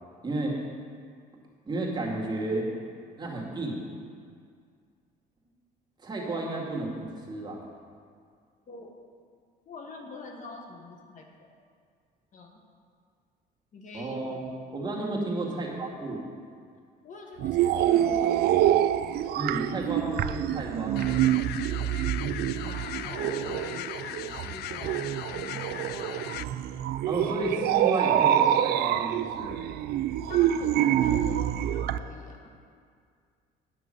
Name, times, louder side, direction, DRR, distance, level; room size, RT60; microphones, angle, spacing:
voice 1, 0.2-0.6 1.7-2.7 3.2-3.9 6.0-7.6 13.9-14.5 14.7-16.3 19.4-21.2 27.1-29.6, right 2 dB, 25° right, -3 dB, 2.3 m, -32 dB
voice 2, 9.6-11.6 12.3-12.6 13.7-14.2 17.0-18.4 22.6-26.3 30.2-32.5, left 3 dB, 50° left, 2 dB, 1.4 m, -43 dB
sound 1, 17.4-32.0, right 11 dB, 70° right, 0.4 m, -26 dB
sound 2, 21.0-26.4, left 13 dB, 70° left, 0.4 m, -39 dB
9.9 x 6.1 x 7.7 m, 2.1 s
cardioid pair, 110°, 17 cm